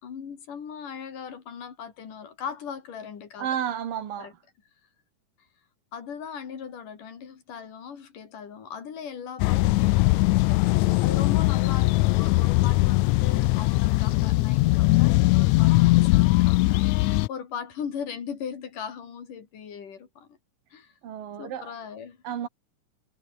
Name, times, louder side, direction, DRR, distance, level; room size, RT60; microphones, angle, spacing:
voice 1, 0.0-3.5 4.2-4.3 5.9-20.4 20.7-20.9 21.4-22.2, left 7 dB, 70° left, 4.7 m, -39 dB
voice 2, 3.4-4.3 21.0-21.7 22.2-22.5, right 9 dB, 90° right, 3.9 m, -31 dB
sound 1, 9.4-17.3, left 20 dB, 90° left, 1.6 m, -20 dB
omnidirectional pair, 3.8 m